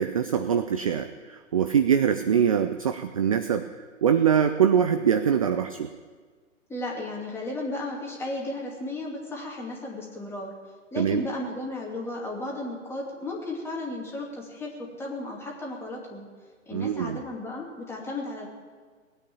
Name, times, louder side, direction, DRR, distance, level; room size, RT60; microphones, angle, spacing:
voice 1, 0.0-3.7 4.0-5.9 11.0-11.2 16.7-17.2, right 8 dB, 25° right, 10 dB, 0.4 m, -23 dB
voice 2, 6.7-10.5 10.9-16.3 16.7-18.5, left 2 dB, 5° left, -2 dB, 2.5 m, -34 dB
19.0 x 8.9 x 8.6 m, 1.5 s
figure-of-eight pair, 125°, 40 cm